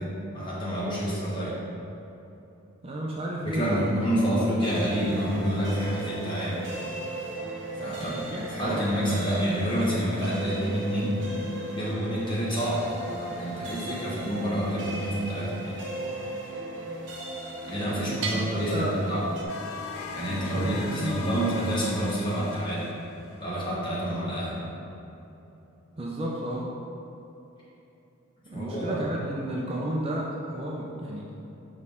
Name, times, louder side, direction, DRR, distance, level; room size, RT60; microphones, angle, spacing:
voice 1, 0.0-1.6 3.4-6.7 7.7-11.2 11.7-12.9 13.2-15.9 17.7-19.3 20.1-22.9 23.4-24.6 28.5-29.0, equal, 20° left, -7 dB, 1.4 m, -28 dB
voice 2, 2.8-4.0 4.3-4.5 8.0-8.9 17.9-18.2 18.5-19.0 20.3-21.3 25.9-26.7 28.4-31.2, right 1 dB, 25° right, -4 dB, 0.5 m, -33 dB
sound 1, 4.6-19.4, right 1 dB, 55° right, 1.0 m, -36 dB
Bell, 18.2-19.9, right 3 dB, 85° right, 0.8 m, -37 dB
sound 2, 19.5-23.4, left 4 dB, 80° left, 0.5 m, -39 dB
6.3 x 5.4 x 3.7 m, 3.0 s
head